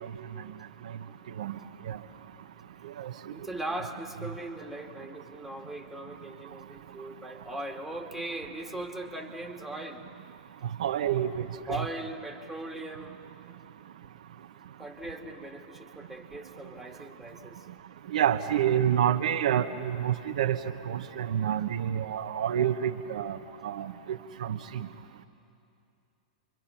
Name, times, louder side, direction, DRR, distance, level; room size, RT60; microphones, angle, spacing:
voice 1, 3.3-10.0 11.7-13.2 14.8-17.7, right 1 dB, ahead, 1 dB, 2.5 m, -39 dB
voice 2, 10.8-11.9 18.1-20.6 20.9-23.4 23.6-24.6, right 10 dB, 70° right, 7 dB, 0.9 m, -28 dB
30.0 x 24.0 x 5.9 m, 2.6 s
hypercardioid pair, 110°, 4 cm